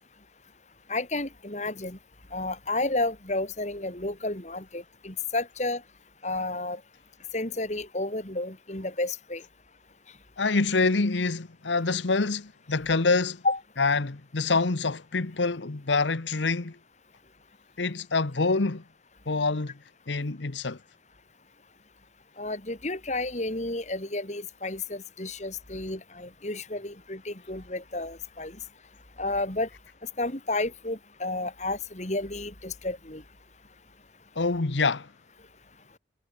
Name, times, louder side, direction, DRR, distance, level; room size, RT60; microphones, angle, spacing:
voice 1, 0.9-2.0 2.3-5.8 6.2-6.8 7.3-9.4 13.4-13.6 22.4-28.6 29.2-29.7 30.2-33.2, left 2 dB, 40° left, 3.2 m, -31 dB
voice 2, 10.4-13.4 13.8-16.8 17.8-18.8 19.3-19.7 20.1-20.8 34.4-35.1, left 3 dB, 85° left, 1.1 m, -26 dB
head